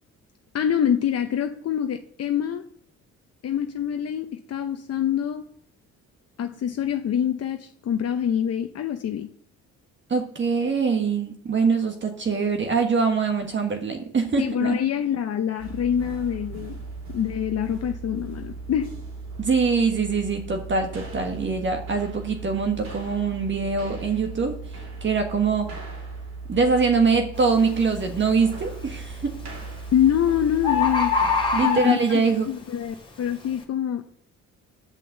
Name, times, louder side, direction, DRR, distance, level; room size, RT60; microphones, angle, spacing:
voice 1, 0.5-2.6 3.4-5.5 6.4-9.3 14.4-16.8 17.1-19.0 29.9-31.1 31.6-34.0, left 9 dB, 55° left, 6 dB, 0.8 m, -25 dB
voice 2, 10.1-14.8 19.4-24.5 25.0-25.7 26.5-29.3 31.5-32.5, right 5 dB, 40° right, 4 dB, 1.5 m, -23 dB
sound 1, 15.6-31.6, right 3 dB, 65° right, 3.9 m, -37 dB
Bird, 27.4-27.6 28.2-28.6 29.6-29.7 30.0-30.1 30.3-30.4 30.6-32.4 32.9-33.0, left 5 dB, 15° left, 2.4 m, -23 dB
9.0 x 5.4 x 7.7 m, 0.65 s
cardioid pair, 90°, 30 cm